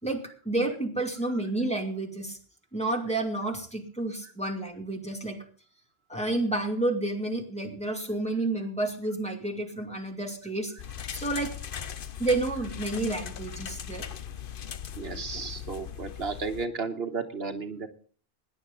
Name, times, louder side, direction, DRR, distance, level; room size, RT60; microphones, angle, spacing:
voice 1, 0.0-2.4 2.7-5.4 6.1-10.7 11.1-11.5 12.2-14.1, right 2 dB, 5° left, 1 dB, 2.6 m, -30 dB
sound 1, 10.8-16.7, left 9 dB, 60° left, 1.0 m, -39 dB
voice 2, 15.0-17.9, right 4 dB, 75° right, 7 dB, 1.5 m, -33 dB
20.5 x 10.5 x 3.9 m, 0.43 s
omnidirectional pair, 1.0 m